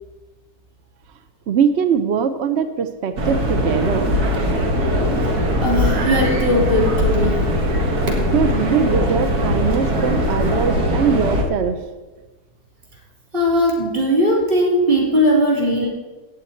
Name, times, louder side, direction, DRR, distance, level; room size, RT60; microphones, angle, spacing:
voice 1, 1.5-4.2 7.9-8.0 8.3-11.8, right 7 dB, 55° right, 9 dB, 0.8 m, -21 dB
sound 1, 3.2-11.4, equal, 90° right, 1.9 m, -20 dB
voice 2, 5.6-7.4 13.3-15.9, equal, 35° right, -2 dB, 3.7 m, -18 dB
14.5 x 9.3 x 4.4 m, 1.2 s
omnidirectional pair, 1.6 m